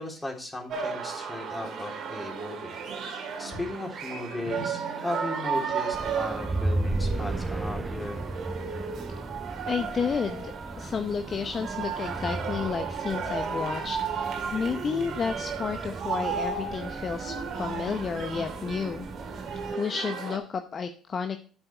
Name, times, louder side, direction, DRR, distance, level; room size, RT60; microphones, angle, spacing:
voice 1, 0.0-8.2, left 2 dB, 15° left, 1 dB, 3.2 m, -37 dB
sound 1, 0.7-20.4, right 6 dB, 55° right, 2.2 m, -34 dB
sound 2, 5.9-19.8, right 2 dB, 25° right, 0.5 m, -35 dB
voice 2, 9.7-19.1 19.8-21.4, left 6 dB, 40° left, 7 dB, 0.8 m, -31 dB
8.0 x 7.2 x 4.4 m, 0.41 s
hypercardioid pair, 65°, 0 cm